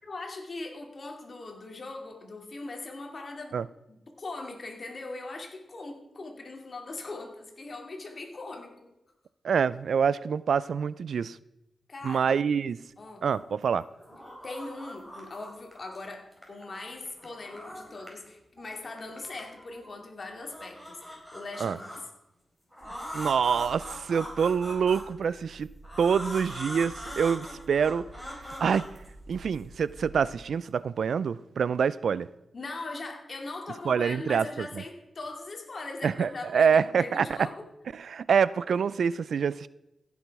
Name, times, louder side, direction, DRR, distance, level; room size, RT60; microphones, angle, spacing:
voice 1, 0.0-3.6 3.9-8.9 11.9-12.3 13.0-13.3 14.4-21.9 32.5-37.7, left 3 dB, 50° left, 3 dB, 2.4 m, -40 dB
voice 2, 9.4-11.4 12.0-12.8 13.2-13.9 21.6-21.8 23.1-25.7 26.0-28.0 28.6-28.9 29.3-32.3 33.9-34.7 36.0-37.3 37.9-39.7, right 6 dB, 80° right, 19 dB, 0.3 m, -26 dB
sound 1, 13.1-13.6 13.9-16.0 16.3-18.3 18.5-19.9 20.3-22.0 22.7-25.3 25.8-29.6, equal, ahead, 4.2 m, -42 dB
sound 2, 22.8-30.4, right 2 dB, 35° right, 1.9 m, -50 dB
15.5 x 7.1 x 4.7 m, 0.90 s
cardioid pair, 70°, 0 cm